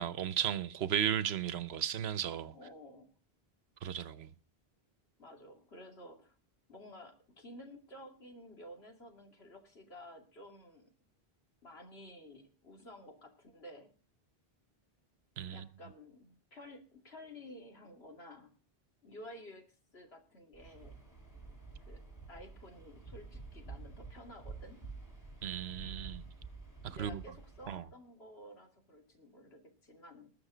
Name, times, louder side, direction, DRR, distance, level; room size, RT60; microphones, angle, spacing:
voice 1, 0.0-2.5 3.8-4.3 15.4-15.7 25.4-26.2 26.8-27.2 27.7-27.8, right 9 dB, 80° right, 1.0 m, -35 dB
voice 2, 2.5-3.1 5.2-6.4 6.7-10.9 11.6-13.9 15.5-18.6 19.0-21.0 21.9-22.0 22.3-24.9 26.9-30.3, left 1 dB, 80° left, 2.7 m, -53 dB
Waves surf, 20.5-27.8, right 4 dB, 15° left, 3.7 m, -50 dB
20.0 x 6.7 x 5.0 m
omnidirectional pair, 1.0 m